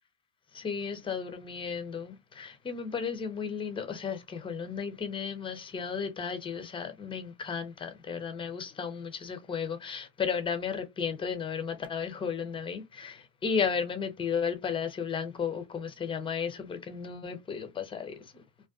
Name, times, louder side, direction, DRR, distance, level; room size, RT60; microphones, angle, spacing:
voice 1, 0.5-18.4, left 6 dB, 15° left, 0.4 m, -34 dB
2.4 x 2.2 x 2.3 m
hypercardioid pair, 85°, 41 cm